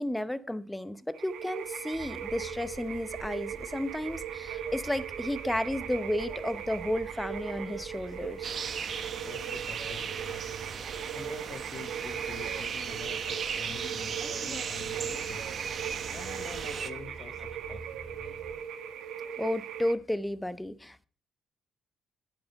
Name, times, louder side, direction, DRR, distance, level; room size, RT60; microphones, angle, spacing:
voice 1, 0.0-8.5 19.4-21.1, left 1 dB, 5° left, 0.7 m, -33 dB
sound 1, 1.1-19.9, right 9 dB, 80° right, 1.2 m, -39 dB
Bus, 1.9-18.6, right 3 dB, 30° right, 1.9 m, -48 dB
sound 2, 8.4-16.9, right 7 dB, 55° right, 1.0 m, -37 dB
voice 2, 9.2-10.6 11.1-15.6 16.1-18.4, left 6 dB, 50° left, 0.9 m, -47 dB
10.5 x 9.0 x 5.2 m
cardioid pair, 90°, 0 cm